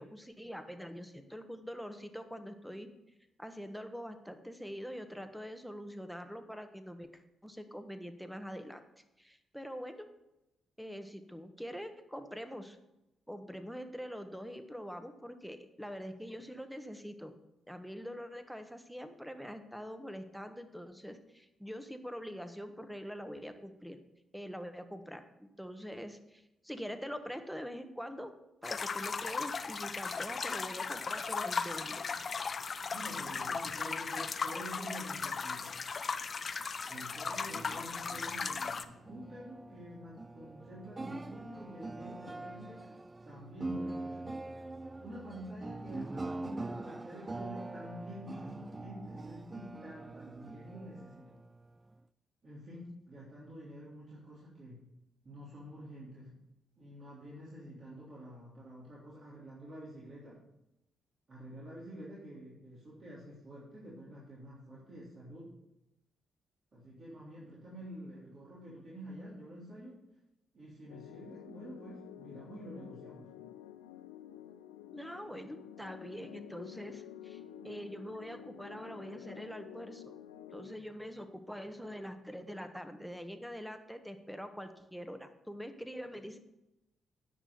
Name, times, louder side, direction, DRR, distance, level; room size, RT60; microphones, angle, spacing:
voice 1, 0.0-2.9 3.4-7.1 7.4-8.8 9.2-10.1 10.8-12.8 13.3-17.3 17.7-24.0 24.3-28.3 28.6-32.0 74.9-80.1 80.5-86.4, equal, ahead, 8 dB, 1.4 m, -44 dB
sound 1, 28.6-38.8, left 5 dB, 45° left, 0.6 m, -37 dB
voice 2, 32.9-35.8 36.8-43.0 43.2-44.5 45.0-51.4 52.4-54.8 55.2-56.4 56.8-60.4 61.3-65.5 66.7-70.0 70.5-73.3, equal, 45° right, -8 dB, 3.3 m, -48 dB
sound 2, 37.3-52.0, right 2 dB, 25° right, 0.4 m, -44 dB
sound 3, 70.9-80.8, left 11 dB, 85° left, 0.4 m, -51 dB
10.0 x 6.3 x 6.9 m, 0.90 s
hypercardioid pair, 40°, 0 cm